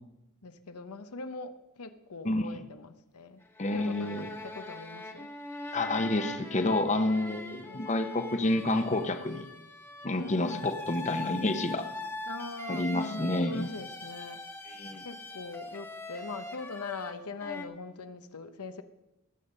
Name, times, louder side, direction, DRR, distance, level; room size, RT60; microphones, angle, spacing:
voice 1, 0.4-3.4 3.7-5.3 7.6-8.1 10.2-10.7 12.3-14.4 15.0-18.8, left 3 dB, 85° left, 9 dB, 0.9 m, -42 dB
voice 2, 2.2-2.6 3.6-4.3 5.7-9.5 10.0-11.9 12.7-13.6 14.7-15.0, left 2 dB, 30° left, 8 dB, 0.8 m, -29 dB
sound 1, 3.4-17.6, left 2 dB, 10° left, 1.0 m, -42 dB
19.5 x 7.8 x 5.5 m, 0.94 s
head